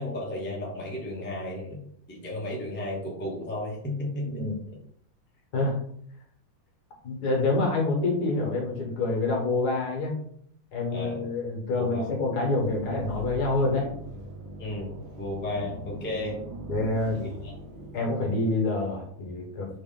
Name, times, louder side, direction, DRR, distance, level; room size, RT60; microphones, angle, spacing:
voice 1, 0.0-1.8 2.1-4.5 10.9-11.3 11.7-12.2 14.6-16.4 17.1-17.5, left 1 dB, 15° left, -3 dB, 0.3 m, -34 dB
voice 2, 7.0-10.1 10.7-13.9 16.7-17.2 17.9-19.7, left 2 dB, 55° left, 0 dB, 1.5 m, -27 dB
sound 1, 12.6-18.2, right 1 dB, 80° right, 1.9 m, -41 dB
4.4 x 3.3 x 3.6 m, 0.66 s
omnidirectional pair, 2.3 m